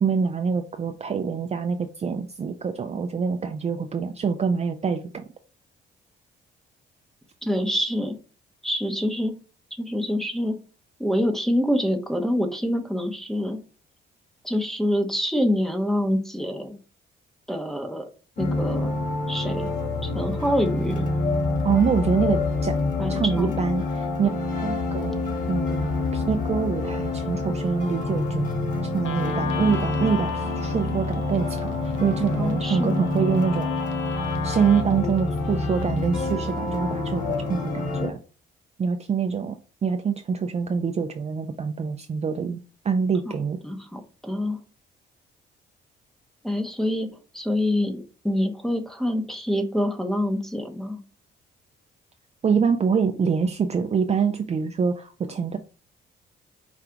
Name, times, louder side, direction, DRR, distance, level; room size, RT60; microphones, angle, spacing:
voice 1, 0.0-5.2 21.6-22.8 23.1-24.3 24.6-25.2 25.5-31.7 32.0-33.7 34.4-38.2 38.8-43.6 52.4-55.6, right 6 dB, 35° right, 6 dB, 0.4 m, -25 dB
voice 2, 7.4-8.2 8.6-9.3 9.7-10.6 11.0-13.6 14.4-16.8 17.5-18.1 18.4-18.9 19.3-19.7 20.0-21.1 23.0-23.6 32.4-33.0 43.3-43.4 43.6-44.6 46.4-47.1 47.3-51.0, equal, ahead, 6 dB, 0.9 m, -26 dB
sound 1, 18.4-38.1, left 3 dB, 40° left, 1.9 m, -27 dB
Guitar, 29.0-36.0, left 6 dB, 85° left, 0.8 m, -35 dB
5.0 x 2.4 x 4.4 m, 0.37 s
cardioid pair, 90°, 20 cm